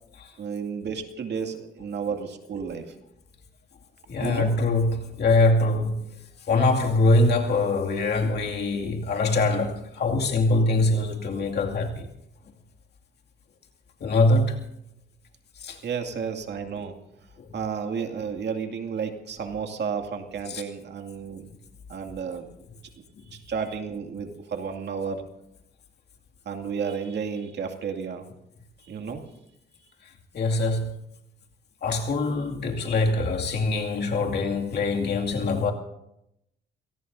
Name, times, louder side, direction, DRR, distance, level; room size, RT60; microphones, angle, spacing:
voice 1, 0.4-2.9 4.2-4.5 15.8-16.9 17.5-21.5 21.9-22.5 23.3-25.2 26.5-28.2 28.9-29.2, right 6 dB, 60° right, 2.4 m, -32 dB
voice 2, 4.1-6.0 6.5-12.1 14.0-14.6 15.6-15.8 17.4-17.6 20.5-20.6 30.3-30.9 31.8-35.7, left 2 dB, 55° left, 2.4 m, -23 dB
28.5 x 18.0 x 2.7 m
cardioid pair, 90°, 20 cm